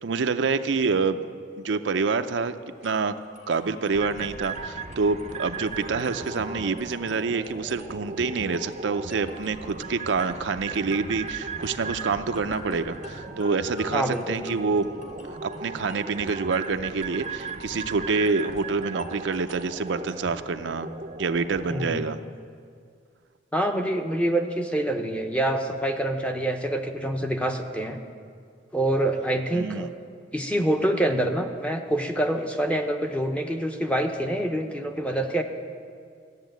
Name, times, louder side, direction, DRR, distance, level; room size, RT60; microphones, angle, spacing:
voice 1, 0.0-2.5 2.8-3.2 3.5-14.9 15.3-20.9 21.2-22.2 29.5-29.9, right 4 dB, 80° right, 9 dB, 0.5 m, -27 dB
sound 1, 2.8-20.8, left 1 dB, 40° left, 1.6 m, -47 dB
sound 2, 3.9-21.9, right 4 dB, 35° right, 0.6 m, -37 dB
voice 2, 13.9-14.4 21.7-22.0 23.5-28.0 28.7-29.9 30.3-35.4, right 1 dB, 5° left, 4 dB, 0.8 m, -26 dB
13.5 x 7.3 x 9.1 m, 2.2 s
head